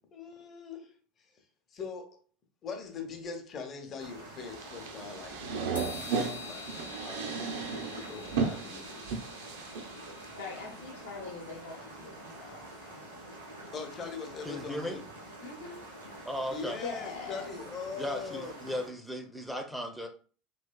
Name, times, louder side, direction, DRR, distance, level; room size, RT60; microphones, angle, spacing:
voice 1, 0.1-0.9 1.7-2.2 2.6-5.4 5.7-9.2 13.7-15.1 16.5-18.6, left 5 dB, 35° left, 0.8 m, -42 dB
sound 1, 4.0-18.9, right 1 dB, 85° right, 1.1 m, -47 dB
sound 2, 4.5-10.6, right 5 dB, 60° right, 0.5 m, -35 dB
sound 3, 5.7-11.0, left 4 dB, 90° left, 0.7 m, -48 dB
voice 2, 10.4-12.6 12.9-13.0 15.4-15.8 16.8-17.5, left 4 dB, 65° left, 1.0 m, -42 dB
voice 3, 14.4-15.0 16.2-16.8 17.9-20.1, equal, ahead, 0.6 m, -36 dB
3.2 x 3.0 x 2.3 m
figure-of-eight pair, 70°, 0 cm